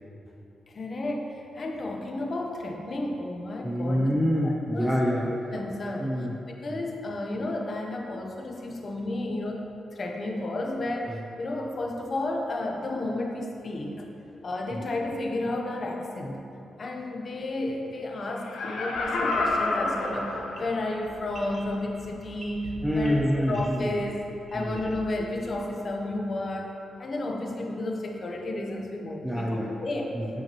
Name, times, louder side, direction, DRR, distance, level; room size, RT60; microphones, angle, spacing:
voice 1, 0.7-4.1 4.4-4.9 5.5-6.3 6.6-9.6 9.9-14.1 14.4-16.5 16.8-24.2 24.5-26.7 27.0-30.2, left 2 dB, 35° left, 1 dB, 0.8 m, -32 dB
voice 2, 3.6-5.3 6.0-6.3 6.7-6.8 11.1-11.2 14.7-14.8 22.8-23.9 24.5-24.8 29.2-29.7 30.1-30.4, equal, 5° right, -3 dB, 0.5 m, -27 dB
Laughter, 18.4-21.0 21.5-21.6, left 2 dB, 90° left, 0.9 m, -29 dB
sound 1, 18.9-25.7, right 2 dB, 40° right, 1.1 m, -45 dB
9.1 x 7.9 x 2.9 m, 2.9 s
wide cardioid pair, 170°, 0 cm